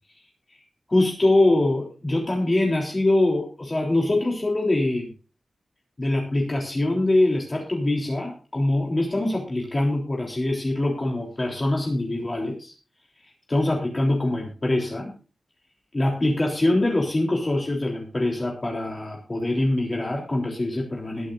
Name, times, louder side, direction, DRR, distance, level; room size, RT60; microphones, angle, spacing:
voice 1, 0.9-5.1 6.0-12.7 13.5-15.1 15.9-21.3, left 1 dB, 25° left, -1 dB, 3.5 m, -23 dB
21.5 x 9.1 x 2.6 m, 0.37 s
wide cardioid pair, 160°, 0 cm